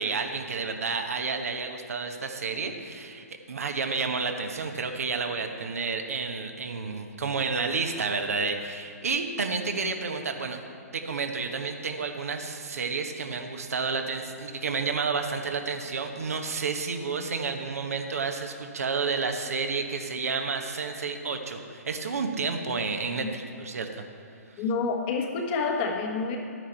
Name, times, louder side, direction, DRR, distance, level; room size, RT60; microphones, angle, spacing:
voice 1, 0.0-10.6 10.9-24.0, right 4 dB, 65° right, 5 dB, 1.1 m, -30 dB
voice 2, 24.6-26.4, left 4 dB, 30° left, 2 dB, 1.3 m, -28 dB
12.0 x 9.5 x 4.5 m, 2.4 s
figure-of-eight pair, 125°, 9 cm